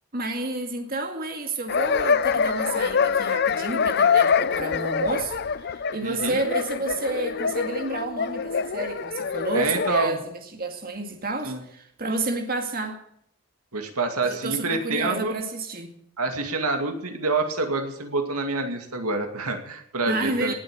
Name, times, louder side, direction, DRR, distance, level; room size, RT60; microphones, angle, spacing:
voice 1, 0.1-13.0 14.2-15.9 20.1-20.5, right 2 dB, 40° right, 4 dB, 2.1 m, -30 dB
sound 1, 1.7-10.0, left 6 dB, 45° left, 0.5 m, -25 dB
voice 2, 6.0-6.4 9.5-10.2 11.4-11.6 13.7-15.4 16.2-20.5, right 3 dB, 85° right, 5 dB, 2.4 m, -27 dB
18.5 x 8.2 x 8.7 m, 0.70 s
head